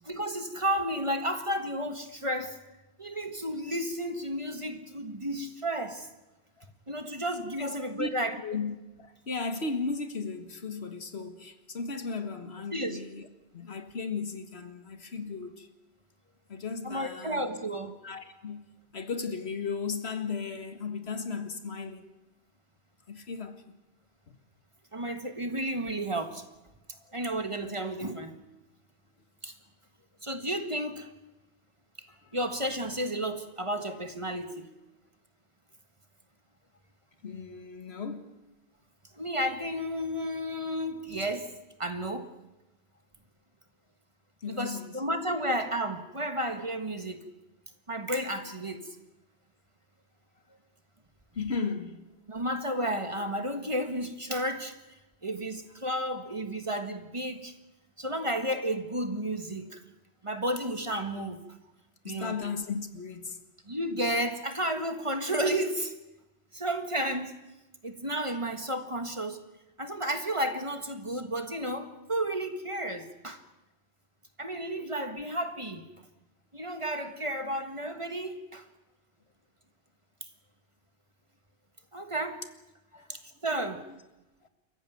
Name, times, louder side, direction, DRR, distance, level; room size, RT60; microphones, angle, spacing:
voice 1, 0.0-2.6 3.0-6.1 6.9-8.4 12.7-13.0 16.8-17.9 24.9-26.4 27.1-28.3 29.4-29.5 30.2-31.1 32.3-34.7 39.2-41.5 41.8-42.3 44.5-47.2 47.9-48.9 52.3-54.7 55.2-57.5 58.0-59.8 60.2-61.4 62.0-62.4 63.7-65.9 66.5-67.3 67.8-69.4 69.8-73.4 74.4-75.8 76.5-78.7 81.9-82.4 83.1-83.9, right 1 dB, 30° right, 1.6 m, -32 dB
voice 2, 7.6-8.1 8.4-13.3 13.5-15.7 16.5-17.4 18.0-22.1 23.1-23.6 24.3-24.4 32.2-32.4 37.2-38.4 44.4-45.0 50.5-50.6 51.3-52.0 62.0-63.4 74.8-74.9 82.9-83.2 83.6-84.0 84.4-84.5, left 4 dB, 70° left, 1.9 m, -36 dB
27.5 x 15.0 x 9.3 m
omnidirectional pair, 1.1 m